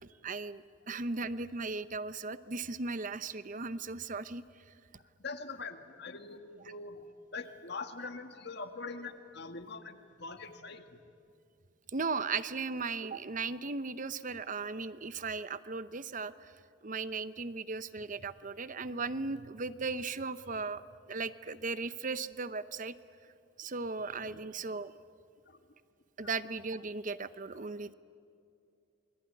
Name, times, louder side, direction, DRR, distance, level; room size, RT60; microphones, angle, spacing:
voice 1, 0.2-4.4 11.9-16.3 16.8-20.8 21.1-23.0 23.6-24.9 26.2-27.9, right 4 dB, 45° right, 14 dB, 0.8 m, -37 dB
voice 2, 4.9-11.0 24.0-24.4 25.4-25.6 26.2-26.3, left 4 dB, 60° left, 7 dB, 1.8 m, -44 dB
28.0 x 22.0 x 9.7 m, 2.5 s
head